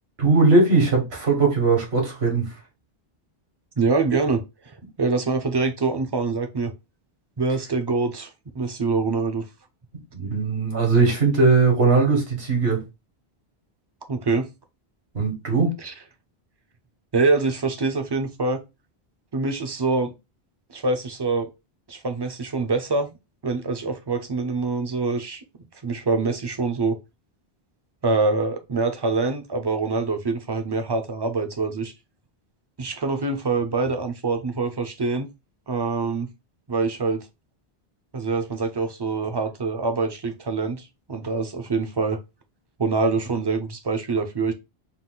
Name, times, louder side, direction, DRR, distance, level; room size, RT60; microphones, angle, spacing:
voice 1, 0.2-2.5 10.1-12.8 15.1-15.7, right 3 dB, 80° right, 1.8 m, -19 dB
voice 2, 3.8-6.7 7.4-9.4 14.1-14.5 15.8-15.9 17.1-18.6 19.3-20.1 20.7-21.5 21.9-23.1 23.4-25.4 25.8-27.0 28.0-31.9 32.8-35.3 35.7-36.3 36.7-37.2 38.1-42.2 42.8-44.5, right 3 dB, 35° right, 0.4 m, -25 dB
4.0 x 2.4 x 3.7 m
omnidirectional pair, 1.1 m